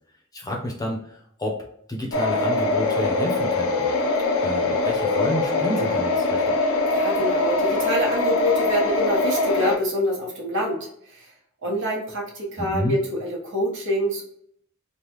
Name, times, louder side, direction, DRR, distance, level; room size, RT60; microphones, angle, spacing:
voice 1, 0.3-1.6 1.9-3.9 4.4-6.5 12.6-12.9, equal, 20° left, 0 dB, 0.7 m, -30 dB
sound 1, 2.1-9.8, left 2 dB, 80° left, 0.6 m, -22 dB
voice 2, 6.9-11.3 11.6-14.2, equal, 60° right, -2 dB, 1.2 m, -26 dB
3.5 x 2.3 x 3.0 m, 0.69 s
head